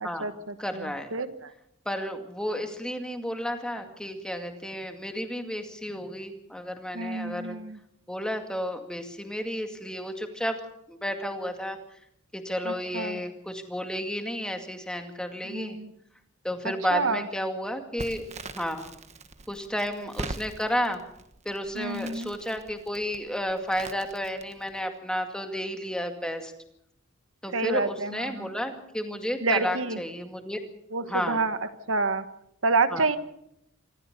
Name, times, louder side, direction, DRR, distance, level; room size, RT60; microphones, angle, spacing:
voice 1, 0.0-1.3 6.9-7.8 12.7-13.2 15.5-15.9 16.9-17.2 21.8-22.3 27.5-28.5 29.4-30.0 30.9-31.6 31.9-32.2 32.6-33.2, right 3 dB, 75° right, 10 dB, 1.3 m, -28 dB
voice 2, 0.6-1.1 1.9-7.6 8.1-10.6 10.9-11.8 12.3-15.8 16.4-18.2 18.5-18.9 19.5-21.0 21.5-26.5 27.4-30.6 31.1-31.4 32.9-33.1, equal, 5° left, 5 dB, 2.2 m, -32 dB
Crackle, 18.0-24.8, right 2 dB, 35° right, 1.3 m, -42 dB
26.0 x 14.5 x 6.8 m, 0.78 s
head